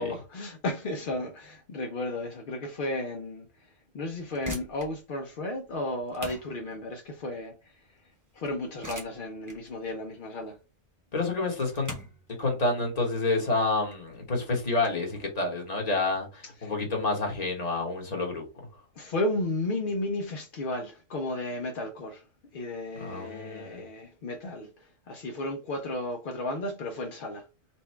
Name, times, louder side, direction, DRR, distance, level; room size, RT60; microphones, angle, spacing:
voice 1, 0.0-7.9 8.3-10.6 16.6-16.8 18.9-22.2 22.5-27.5, left 1 dB, 55° left, 0.5 m, -34 dB
sound 1, 4.3-14.9, right 1 dB, 15° right, 0.9 m, -45 dB
voice 2, 11.1-12.0 12.4-18.4 23.0-23.8, left 3 dB, 30° left, 1.2 m, -29 dB
4.3 x 2.2 x 4.4 m
omnidirectional pair, 1.5 m